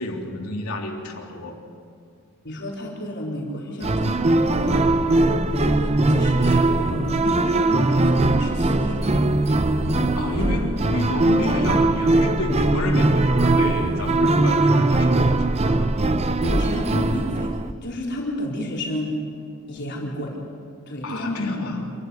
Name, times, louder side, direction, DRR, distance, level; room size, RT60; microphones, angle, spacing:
voice 1, 0.0-1.6 10.2-15.9 21.0-21.9, left 1 dB, 75° left, 0 dB, 3.6 m, -29 dB
voice 2, 2.4-4.8 5.2-9.4 9.8-10.5 16.4-19.2 19.7-20.4 20.9-21.7, left 1 dB, 50° left, -3 dB, 4.3 m, -31 dB
sound 1, 3.8-17.7, right 2 dB, 30° right, 0.7 m, -20 dB
27.5 x 14.0 x 9.6 m, 2.3 s
head